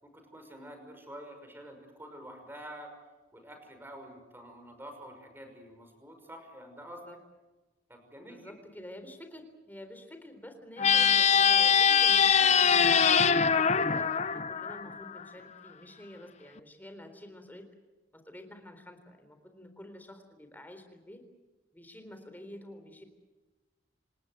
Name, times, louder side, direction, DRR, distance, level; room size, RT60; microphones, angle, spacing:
voice 1, 0.0-2.9 3.3-7.0 7.9-8.5, equal, 10° right, 5 dB, 5.9 m, -48 dB
voice 2, 6.8-7.2 8.2-17.7 18.1-21.2 21.7-23.1, left 1 dB, 10° left, 7 dB, 3.8 m, -48 dB
sound 1, 10.8-15.2, left 6 dB, 35° left, 0.7 m, -23 dB
28.0 x 19.0 x 8.0 m, 1.2 s
head